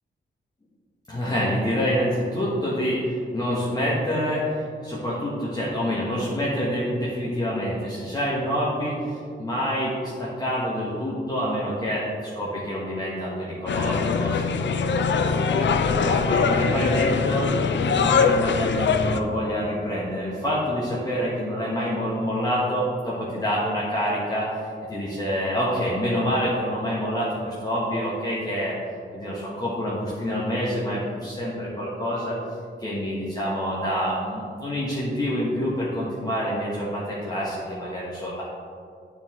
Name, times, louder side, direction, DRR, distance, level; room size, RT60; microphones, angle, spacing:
voice 1, 1.1-15.7 16.0-28.7 29.1-32.4 32.8-38.4, equal, 20° left, -8 dB, 1.4 m, -27 dB
sound 1, 13.7-19.2, left 5 dB, 70° left, 0.5 m, -22 dB
8.6 x 4.6 x 3.7 m, 2.3 s
cardioid pair, 80°, 20 cm